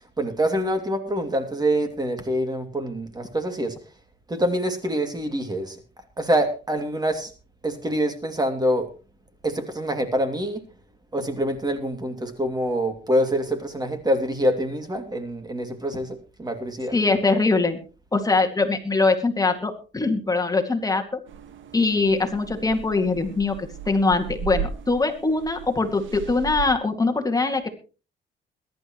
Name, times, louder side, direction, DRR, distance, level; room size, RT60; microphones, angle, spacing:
voice 1, 0.2-3.7 4.3-5.8 6.2-7.3 7.6-8.9 9.4-10.6 11.1-16.9, equal, 20° right, 7 dB, 2.6 m, -25 dB
voice 2, 16.9-17.8 18.1-21.1 21.7-27.7, left 3 dB, 20° left, 3 dB, 2.2 m, -22 dB
sound 1, 21.3-26.7, right 8 dB, 75° right, 1.7 m, -36 dB
21.5 x 11.5 x 3.1 m, 0.36 s
cardioid pair, 90°, 20 cm